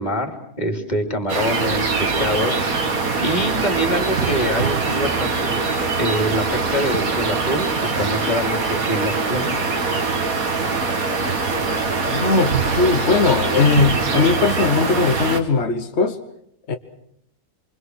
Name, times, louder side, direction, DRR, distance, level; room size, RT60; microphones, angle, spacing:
voice 1, 0.0-2.6 3.2-5.5 6.0-9.5, equal, 25° left, 4 dB, 3.1 m, -25 dB
sound 1, 1.3-15.4, right 4 dB, 65° right, 2.3 m, -22 dB
voice 2, 12.0-16.2 16.7-16.8, left 4 dB, 50° left, 6 dB, 1.4 m, -19 dB
27.0 x 25.0 x 6.3 m, 0.72 s
omnidirectional pair, 1.6 m